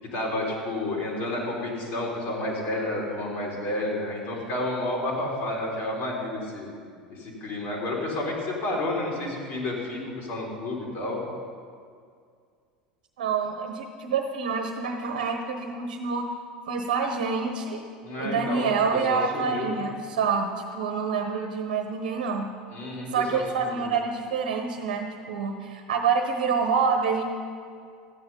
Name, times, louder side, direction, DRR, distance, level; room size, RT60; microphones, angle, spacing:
voice 1, 0.1-6.7 7.1-11.2 18.0-18.7 19.1-19.7 22.7-23.4 23.7-23.9, left 1 dB, 50° left, -2 dB, 3.4 m, -30 dB
voice 2, 13.2-16.3 16.7-17.8 18.2-22.5 23.1-27.2, right 5 dB, 65° right, 4 dB, 1.1 m, -27 dB
13.5 x 9.2 x 5.4 m, 2.2 s
figure-of-eight pair, 75°, 5 cm